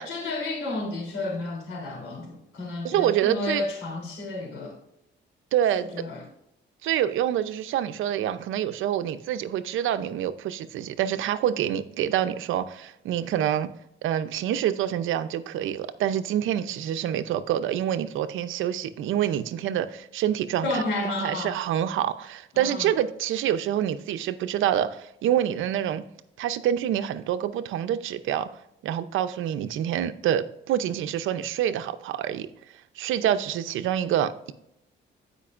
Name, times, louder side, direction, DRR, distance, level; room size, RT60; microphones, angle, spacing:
voice 1, 0.1-4.8 5.7-6.2 20.6-21.5 22.5-22.9, left 2 dB, 85° left, 3.3 m, -31 dB
voice 2, 2.8-3.6 5.5-5.9 6.8-13.7 14.0-20.8 21.2-26.0 26.4-28.5 28.8-32.5 33.0-34.5, right 10 dB, 80° right, 0.7 m, -26 dB
15.5 x 5.2 x 2.5 m
cardioid pair, 90°, 20 cm